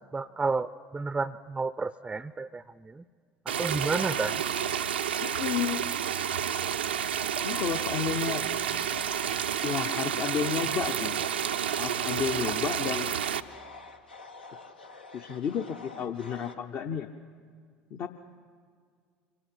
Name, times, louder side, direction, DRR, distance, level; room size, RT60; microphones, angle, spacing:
voice 1, 0.1-3.0 3.5-4.4, right 4 dB, 15° right, 15 dB, 0.5 m, -31 dB
sound 1, 3.5-13.4, right 9 dB, 80° right, 0.6 m, -30 dB
voice 2, 5.2-5.9 7.4-8.5 9.6-11.2 11.8-13.2 15.1-17.1 17.9-18.1, left 7 dB, 45° left, 6 dB, 0.8 m, -32 dB
sound 2, 8.7-16.6, left 3 dB, 85° left, 1.0 m, -48 dB
24.5 x 18.0 x 8.6 m, 2.1 s
figure-of-eight pair, 65°, 5 cm